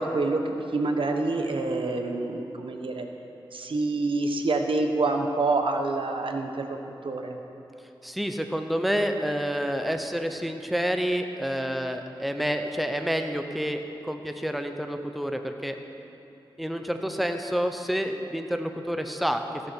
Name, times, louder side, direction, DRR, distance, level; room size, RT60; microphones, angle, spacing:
voice 1, 0.0-3.1 3.5-6.8 7.0-7.4, right 3 dB, 75° right, 4 dB, 1.0 m, -27 dB
voice 2, 8.0-15.8 16.6-19.4, equal, ahead, 6 dB, 0.8 m, -28 dB
15.5 x 11.0 x 4.6 m, 2.8 s
wide cardioid pair, 75°, 9 cm